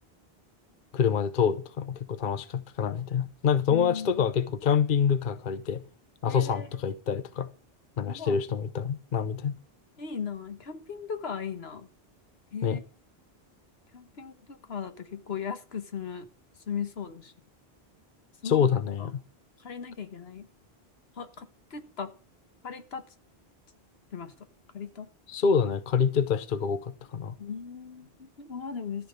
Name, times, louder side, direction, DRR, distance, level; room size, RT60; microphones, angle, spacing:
voice 1, 0.9-5.8 6.2-7.5 8.0-9.5 12.6-12.8 18.4-19.1 25.3-27.3, left 7 dB, 55° left, 0.9 m, -26 dB
voice 2, 3.7-4.3 6.3-6.7 8.1-8.4 10.0-11.9 12.5-12.8 13.9-16.3 16.7-17.3 18.4-18.7 19.0-19.1 19.6-20.5 21.2-22.1 22.6-23.0 24.1-24.3 24.7-25.1 27.4-29.1, left 6 dB, 80° left, 1.5 m, -37 dB
13.5 x 6.1 x 8.0 m
omnidirectional pair, 1.0 m